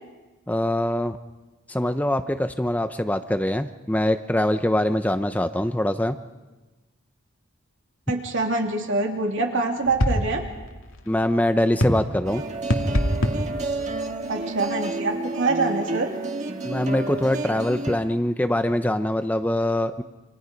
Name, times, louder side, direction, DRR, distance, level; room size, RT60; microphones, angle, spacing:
voice 1, 0.5-1.2 1.7-6.2 11.1-12.4 16.6-20.0, left 1 dB, 5° left, 9 dB, 0.7 m, -23 dB
voice 2, 8.1-10.4 14.3-16.1, right 3 dB, 60° right, 2 dB, 3.2 m, -25 dB
sound 1, 9.8-14.9, equal, 70° left, 2.4 m, -27 dB
sound 2, 12.2-18.0, right 2 dB, 35° right, 2.0 m, -30 dB
28.5 x 27.0 x 5.3 m, 1.2 s
head